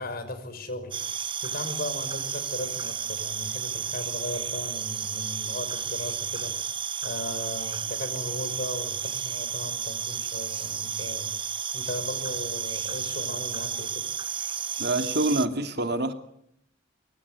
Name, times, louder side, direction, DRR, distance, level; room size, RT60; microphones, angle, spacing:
voice 1, 0.0-14.1, left 1 dB, 50° left, 10 dB, 5.8 m, -37 dB
sound 1, 0.9-15.5, right 7 dB, 25° right, 1.0 m, -32 dB
voice 2, 14.8-16.1, right 2 dB, 55° right, 7 dB, 2.7 m, -26 dB
25.0 x 23.5 x 8.3 m, 0.72 s
head